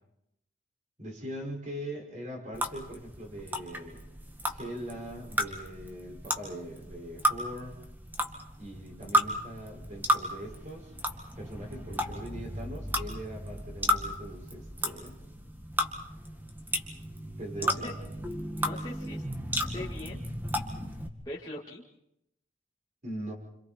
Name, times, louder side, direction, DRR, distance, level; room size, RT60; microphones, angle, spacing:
voice 1, 1.0-4.0 4.5-7.8 8.6-10.9 11.4-15.2 17.4-18.1 23.0-23.3, right 1 dB, 40° right, 1 dB, 6.0 m, -41 dB
sound 1, 2.5-21.1, equal, 10° right, 2.0 m, -34 dB
voice 2, 17.6-18.0 18.6-19.2 19.7-20.2 21.3-21.8, left 1 dB, 20° left, -5 dB, 2.1 m, -41 dB
29.0 x 27.0 x 4.6 m, 0.81 s
head